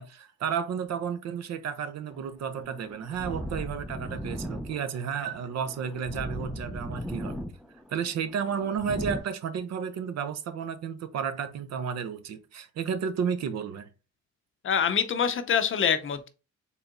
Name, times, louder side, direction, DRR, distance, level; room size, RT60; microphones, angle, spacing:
voice 1, 0.0-7.4 7.9-13.9, right 7 dB, 60° right, 0.6 m, -32 dB
sound 1, 2.1-9.2, equal, ahead, 0.3 m, -38 dB
voice 2, 14.6-16.3, left 7 dB, 45° left, 0.6 m, -25 dB
4.5 x 3.4 x 2.5 m
cardioid pair, 90°, 30 cm